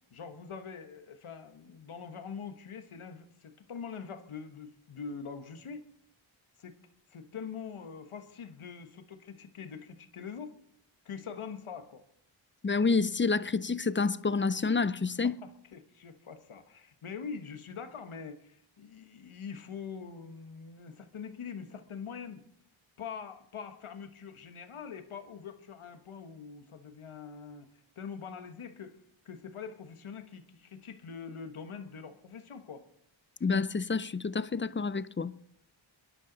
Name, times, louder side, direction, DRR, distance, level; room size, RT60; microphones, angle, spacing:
voice 1, 0.1-5.9 6.6-6.8 7.1-10.5 11.0-12.0 15.2-22.4 23.0-27.7 28.0-28.9 29.2-32.8, left 6 dB, 80° left, 1.3 m, -44 dB
voice 2, 12.6-15.4 33.4-35.3, left 4 dB, 25° left, 0.5 m, -28 dB
27.5 x 11.0 x 4.0 m
cardioid pair, 55°, 49 cm